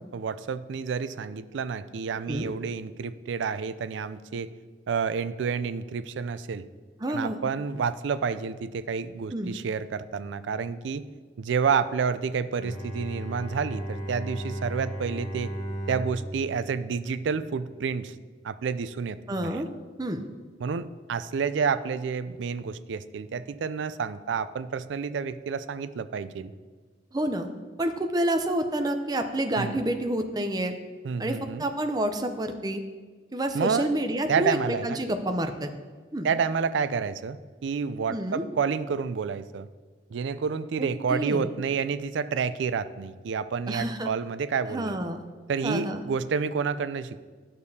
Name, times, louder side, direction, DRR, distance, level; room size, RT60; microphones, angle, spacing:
voice 1, 0.1-4.5 4.9-6.7 7.1-11.0 11.4-15.5 15.9-18.1 18.4-19.6 20.6-26.5 29.6-29.8 31.0-31.6 33.5-33.9 34.3-35.0 36.2-39.7 40.1-45.0 45.5-47.2, right 6 dB, 85° right, 14 dB, 0.4 m, -29 dB
voice 2, 7.0-7.4 9.3-9.5 19.3-19.7 20.0-20.2 27.1-27.5 27.8-30.7 31.2-32.8 33.3-35.7 36.1-36.3 38.1-38.4 40.8-41.5 43.7-44.1 44.7-45.2 45.6-46.0, right 1 dB, 20° right, 6 dB, 0.5 m, -28 dB
Bowed string instrument, 12.6-17.8, right 1 dB, 45° left, 1.2 m, -36 dB
11.0 x 6.7 x 2.8 m, 1.4 s
head